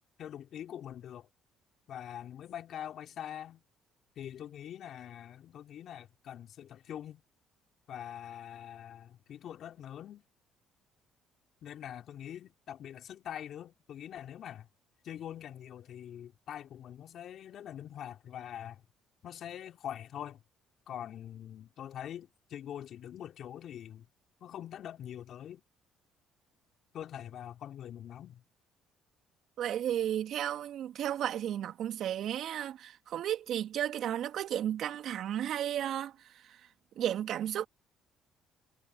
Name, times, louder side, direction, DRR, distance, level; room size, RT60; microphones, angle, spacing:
voice 1, 0.2-1.3 1.9-3.6 4.2-7.2 7.9-10.2 11.6-14.7 15.0-18.8 19.2-20.4 20.9-24.1 24.4-25.6 26.9-28.4, left 10 dB, 60° left, 3.2 m, -44 dB
voice 2, 29.6-36.6 37.0-37.7, right 11 dB, 65° right, 2.5 m, -33 dB
hypercardioid pair, 60°, 0 cm